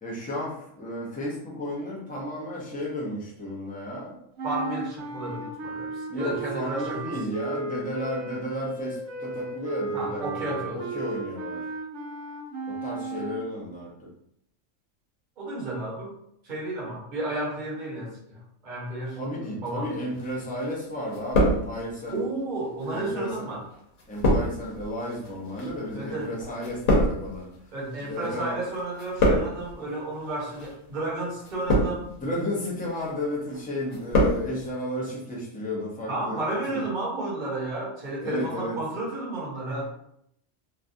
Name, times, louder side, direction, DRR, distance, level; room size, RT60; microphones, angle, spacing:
voice 1, 0.0-4.2 6.1-11.6 12.7-13.9 19.1-22.2 22.9-23.3 24.1-27.5 28.0-28.6 32.2-36.4 36.7-36.8 38.2-38.8, left 1 dB, 10° left, -5 dB, 0.5 m, -33 dB
voice 2, 4.4-7.2 9.9-10.8 15.4-16.1 16.4-19.2 19.5-19.9 22.1-23.6 25.9-26.3 27.7-32.1 36.1-39.9, right 2 dB, 40° right, -5 dB, 1.1 m, -32 dB
sound 1, 4.4-13.5, right 3 dB, 70° right, 0.9 m, -35 dB
sound 2, 20.2-20.8 21.1-22.1 22.8-28.5 28.7-29.7 30.4-30.7 31.4-32.2 32.7-33.1 33.5-34.4 34.7-34.8, left 1 dB, 90° left, 1.2 m, -26 dB
3.1 x 2.3 x 2.5 m, 0.74 s
omnidirectional pair, 1.3 m